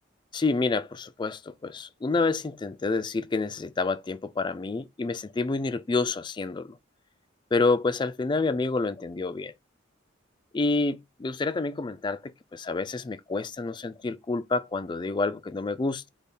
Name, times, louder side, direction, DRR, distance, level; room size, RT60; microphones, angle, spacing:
voice 1, 0.3-6.8 7.5-9.5 10.5-16.1, left 3 dB, 25° left, 0.3 m, -28 dB
3.5 x 3.5 x 4.1 m
head